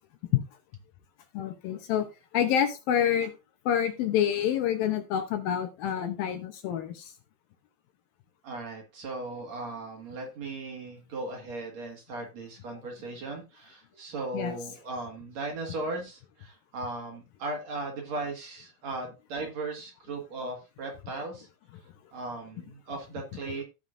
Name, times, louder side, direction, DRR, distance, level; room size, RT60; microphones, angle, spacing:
voice 1, 1.3-2.1 2.3-3.3 3.7-7.1 14.3-14.6, left 9 dB, 75° left, 7 dB, 2.4 m, -27 dB
voice 2, 8.4-21.5 22.1-23.6, right 2 dB, 50° right, 1 dB, 2.5 m, -37 dB
15.5 x 5.8 x 2.6 m, 0.27 s
omnidirectional pair, 4.6 m